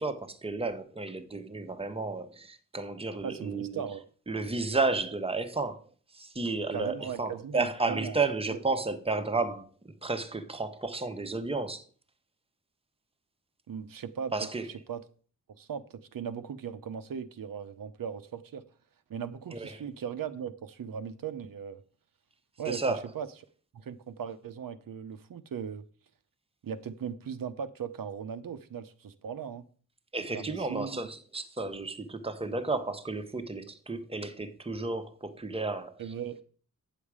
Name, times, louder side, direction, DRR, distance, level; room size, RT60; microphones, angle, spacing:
voice 1, 0.0-3.8 4.3-5.8 6.1-11.8 14.3-14.7 19.5-19.8 22.7-23.0 30.1-36.0, right 3 dB, 15° right, 1.0 m, -32 dB
voice 2, 3.2-4.0 6.7-8.2 8.5-8.6 13.7-15.0 15.6-18.6 19.1-21.8 22.6-23.3 23.7-25.8 26.6-29.6 30.3-31.0 36.0-36.4, right 7 dB, 80° right, 0.7 m, -38 dB
9.2 x 7.3 x 4.8 m
wide cardioid pair, 115°, 34 cm